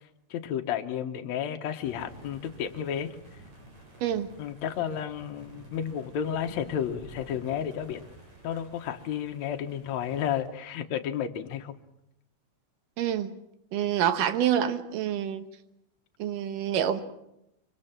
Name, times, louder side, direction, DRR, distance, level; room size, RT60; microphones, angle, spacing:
voice 1, 0.3-3.2 4.4-8.0 8.4-11.8, left 9 dB, 65° left, 4 dB, 2.3 m, -32 dB
sound 1, 1.8-10.4, right 1 dB, 55° right, 8.2 m, -50 dB
voice 2, 13.0-13.3 13.7-15.5 16.2-17.0, right 10 dB, 85° right, 9 dB, 2.8 m, -27 dB
26.0 x 24.0 x 5.9 m, 0.83 s
omnidirectional pair, 3.7 m